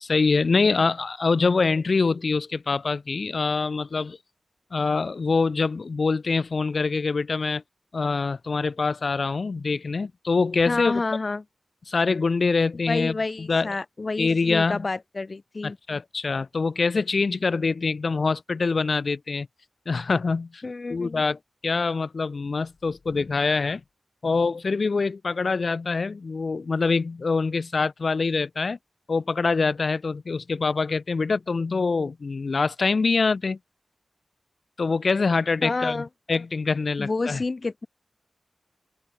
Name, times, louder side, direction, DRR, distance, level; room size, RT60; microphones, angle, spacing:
voice 1, 0.0-4.2 4.7-7.6 7.9-11.0 11.9-13.7 14.2-14.8 15.6-19.5 19.9-20.6 20.9-21.4 21.6-23.8 24.2-28.8 29.1-33.6 34.8-37.4, left 4 dB, 70° left, 0.4 m, -24 dB
voice 2, 10.7-11.4 12.9-15.8 20.6-21.2 35.6-36.1 37.0-37.9, left 3 dB, 50° left, 2.1 m, -29 dB
wide cardioid pair, 65°, 0 cm